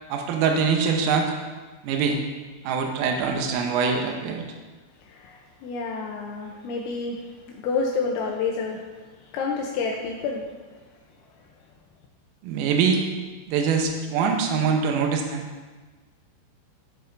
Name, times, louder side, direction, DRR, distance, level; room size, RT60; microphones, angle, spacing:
voice 1, 0.1-1.3 1.8-2.2 2.7-4.4 12.4-13.0 13.5-15.4, right 5 dB, 85° right, 2 dB, 3.4 m, -23 dB
voice 2, 5.1-8.8 9.2-10.4, left 4 dB, 80° left, 0 dB, 2.7 m, -29 dB
12.5 x 6.7 x 2.6 m, 1.3 s
omnidirectional pair, 5.9 m